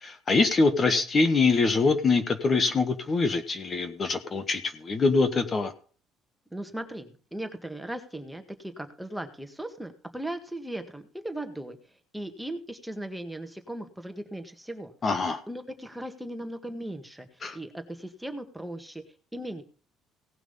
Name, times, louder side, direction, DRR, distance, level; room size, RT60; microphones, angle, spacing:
voice 1, 0.0-5.7 15.0-15.4 17.4-17.6, left 4 dB, 30° left, 9 dB, 1.5 m, -24 dB
voice 2, 6.5-11.8 12.1-14.9 15.2-17.3 17.5-19.0 19.3-19.6, right 1 dB, 5° right, 6 dB, 1.8 m, -38 dB
18.0 x 6.0 x 5.5 m, 0.41 s
cardioid pair, 120°, 0 cm